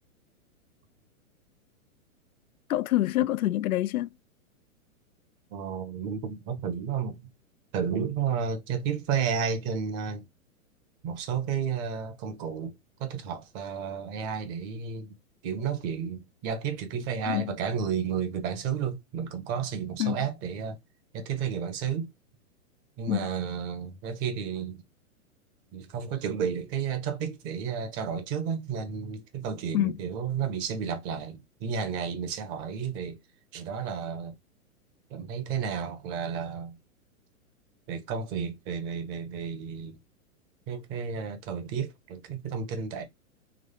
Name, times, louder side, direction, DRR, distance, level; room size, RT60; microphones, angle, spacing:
voice 1, 2.7-4.1 17.2-17.5 20.0-20.2 23.1-23.3 29.7-29.9, left 14 dB, 80° left, 0.5 m, -26 dB
voice 2, 5.5-7.3 7.7-10.2 11.0-12.7 13.0-15.1 15.4-20.8 21.1-22.1 23.0-24.8 25.7-33.2 33.5-34.3 35.1-36.8 37.9-40.0 40.7-43.0, right 7 dB, 35° right, 1.4 m, -32 dB
3.8 x 3.2 x 3.5 m
hypercardioid pair, 130°, 43 cm